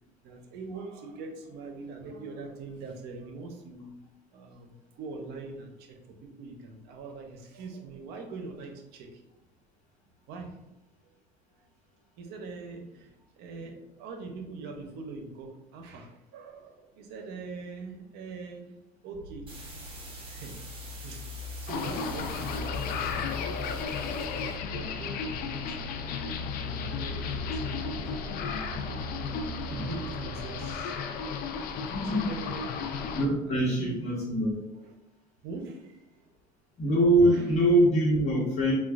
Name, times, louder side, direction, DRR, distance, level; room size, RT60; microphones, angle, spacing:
voice 1, 0.2-3.9 4.3-9.2 10.3-10.6 12.2-18.8 19.0-19.5 20.3-20.6 20.9-23.6 24.1-24.4 24.7-25.8 26.6-28.1 29.6-30.9 32.0-32.9 33.5-33.9 34.8-34.9 35.4-36.3 37.3-37.4, right 3 dB, 75° right, 3 dB, 0.6 m, -43 dB
sound 1, 19.1-30.8, left 2 dB, 85° left, 1.0 m, -41 dB
sound 2, 19.5-24.6, right 2 dB, 30° right, 1.0 m, -47 dB
sound 3, 21.7-33.3, left 5 dB, 60° left, 0.4 m, -34 dB
voice 2, 31.9-32.3 33.2-34.6 36.8-38.7, right 1 dB, 40° left, -5 dB, 1.0 m, -24 dB
4.3 x 2.2 x 2.4 m, 0.92 s
cardioid pair, 105°, 17 cm